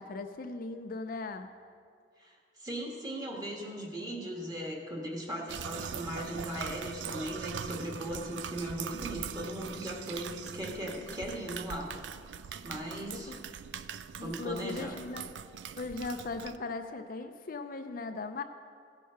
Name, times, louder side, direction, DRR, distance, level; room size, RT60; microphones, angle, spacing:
voice 1, 0.0-1.5 13.1-13.4 14.2-15.3 15.8-18.4, left 3 dB, 50° left, 7 dB, 0.5 m, -38 dB
voice 2, 2.2-11.9 12.6-13.4 14.2-14.9, equal, 20° right, -1 dB, 1.7 m, -38 dB
sound 1, 5.5-16.6, right 7 dB, 90° right, 0.4 m, -42 dB
16.0 x 6.5 x 5.7 m, 2.3 s
head